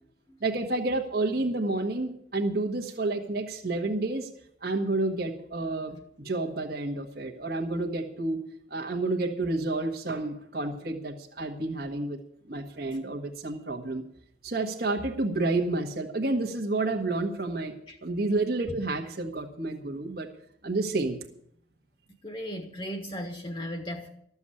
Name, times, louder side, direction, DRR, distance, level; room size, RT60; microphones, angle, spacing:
voice 1, 0.4-4.3 4.6-8.4 8.7-12.2 12.5-14.0 14.4-17.7 18.0-20.3 20.6-21.2, right 2 dB, 55° right, 2 dB, 1.4 m, -30 dB
voice 2, 22.2-24.1, equal, 30° left, 4 dB, 1.3 m, -36 dB
13.5 x 7.2 x 9.9 m, 0.70 s
head